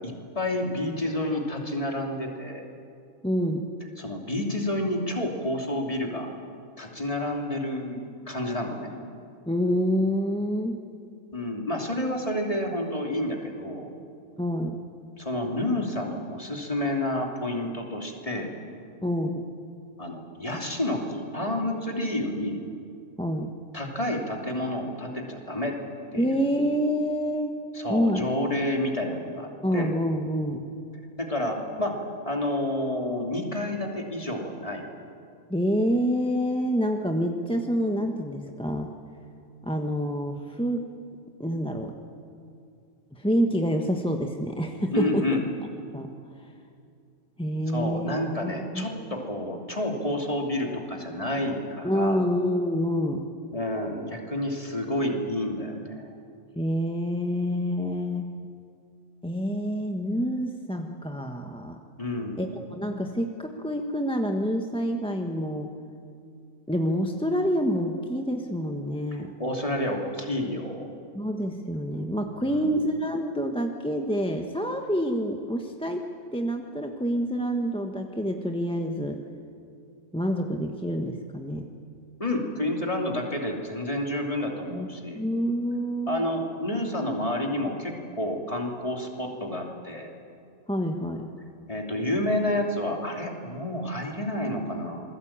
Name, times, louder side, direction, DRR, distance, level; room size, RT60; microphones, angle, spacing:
voice 1, 0.0-2.6 4.0-6.3 6.8-8.9 11.3-13.9 15.2-18.5 20.0-22.6 23.7-25.7 26.1-26.4 27.7-29.9 31.2-32.0 32.2-34.8 44.9-45.4 47.7-52.4 53.5-56.2 62.0-62.5 69.1-70.9 72.4-72.8 82.2-85.2 86.1-90.1 91.7-95.0, left 1 dB, 25° left, 1 dB, 3.0 m, -29 dB
voice 2, 3.2-3.8 9.5-10.8 14.4-14.9 19.0-19.6 23.2-23.6 26.2-27.6 27.9-28.3 29.6-30.7 35.5-38.9 39.6-41.0 41.4-42.0 43.1-45.4 45.9-46.2 47.4-48.9 49.1-49.2 51.8-53.4 56.6-58.5 59.2-61.8 62.4-65.7 66.7-69.4 71.1-76.0 76.3-79.3 80.1-81.7 84.7-84.9 85.1-86.2 90.7-91.4, equal, 5° left, 3 dB, 1.1 m, -27 dB
27.0 x 20.5 x 8.8 m, 2.5 s
omnidirectional pair, 1.5 m